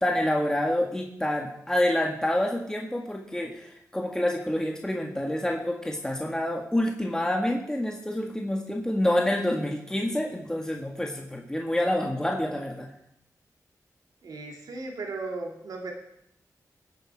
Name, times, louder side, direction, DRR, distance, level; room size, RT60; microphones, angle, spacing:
voice 1, 0.0-12.9, left 1 dB, 10° left, 0 dB, 1.8 m, -27 dB
voice 2, 14.2-15.9, right 3 dB, 85° right, 1 dB, 2.7 m, -36 dB
20.0 x 8.5 x 4.8 m, 0.76 s
cardioid pair, 75°, 7 cm